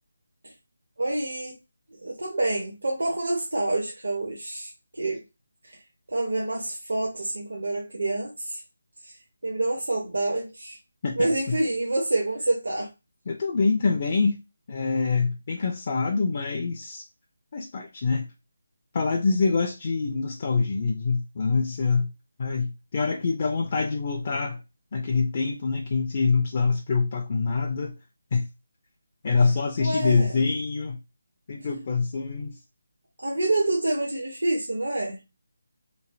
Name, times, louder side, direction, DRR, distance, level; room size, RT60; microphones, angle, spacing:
voice 1, 1.0-1.6 2.0-5.2 5.6-5.8 6.1-8.6 9.0-9.2 9.4-10.8 11.2-12.9 29.8-30.4 33.2-35.2, right 2 dB, 75° right, 0.8 m, -27 dB
voice 2, 11.0-11.6 13.3-14.4 14.7-17.0 17.5-18.3 18.9-22.1 22.4-24.6 24.9-27.9 28.3-28.4 29.2-31.0 31.5-32.6, left 4 dB, 40° left, 0.5 m, -25 dB
3.1 x 2.4 x 2.5 m
figure-of-eight pair, 155°, 0 cm